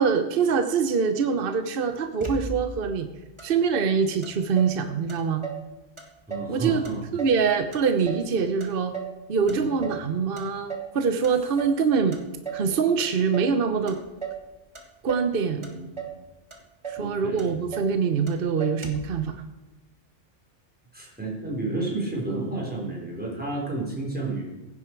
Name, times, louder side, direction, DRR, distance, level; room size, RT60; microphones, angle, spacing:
voice 1, 0.0-3.1 3.4-5.5 6.5-6.8 7.1-8.9 9.3-12.2 12.5-14.0 15.0-15.7 16.9-19.4, right 6 dB, 50° right, 8 dB, 1.0 m, -24 dB
Motor vehicle (road), 2.2-2.9 3.4-3.5 3.7-4.8 5.1-5.7 6.0-6.6 6.8-8.3 8.6-9.2 9.5-10.1 10.4-10.9 11.2-11.8 12.1-12.7 13.0-13.6 13.9-14.5 14.7-15.3 15.6-16.2 16.5-16.6 16.8-17.1 17.4-18.0 18.3-18.4 18.6-19.1, right 6 dB, 25° right, 1.5 m, -36 dB
voice 2, 6.3-7.0 9.5-9.8 15.5-16.2 17.0-17.5 20.9-24.4, right 2 dB, 5° right, -3 dB, 4.0 m, -31 dB
15.5 x 9.7 x 4.6 m, 1.1 s
omnidirectional pair, 1.3 m